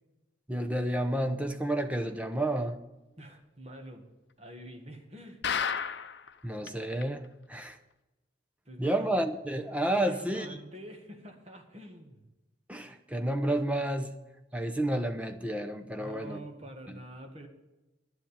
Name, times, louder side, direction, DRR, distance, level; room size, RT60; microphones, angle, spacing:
voice 1, 0.5-2.8 6.4-7.8 8.8-10.6 12.7-14.1 14.5-16.4 16.9-17.0, right 1 dB, 5° right, 7 dB, 0.8 m, -30 dB
voice 2, 3.2-4.1 4.4-5.4 8.7-9.1 10.0-12.2 16.0-17.5, right 1 dB, 35° right, 3 dB, 1.8 m, -46 dB
sound 1, 5.4-6.3 6.7-6.8 7.0-7.1 7.6-7.7, left 7 dB, 65° left, 0.7 m, -31 dB
10.5 x 7.6 x 8.7 m, 1.0 s
head